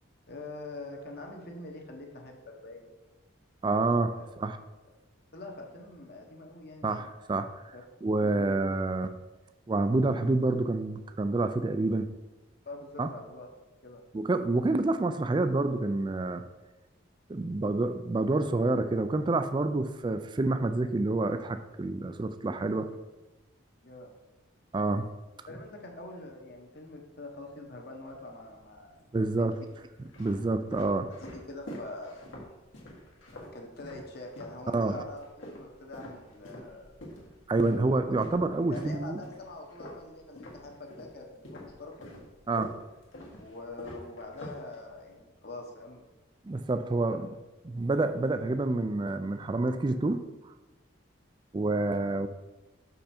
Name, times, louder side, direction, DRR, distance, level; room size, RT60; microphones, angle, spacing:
voice 1, 0.3-2.9 4.1-4.3 5.3-6.9 7.7-7.8 8.2-8.5 12.6-13.5 13.8-14.0 23.8-24.1 25.5-29.6 31.2-32.1 33.2-36.9 37.7-38.0 38.7-42.1 43.4-46.1 47.1-47.2, left 2 dB, 50° left, 1 dB, 1.2 m, -44 dB
voice 2, 3.6-4.6 6.8-7.7 8.0-9.1 9.7-12.1 13.0-13.1 14.1-16.4 17.3-22.9 24.7-25.1 29.1-29.6 30.2-31.1 34.7-35.0 37.5-39.2 42.5-42.7 46.4-47.2 47.7-50.2 51.5-52.3, right 2 dB, 20° right, 10 dB, 0.3 m, -28 dB
sound 1, 28.1-28.8 29.5-34.6 34.9-41.2 41.4-45.1, left 1 dB, 70° left, 1.7 m, -46 dB
6.3 x 5.4 x 4.4 m, 1.1 s
head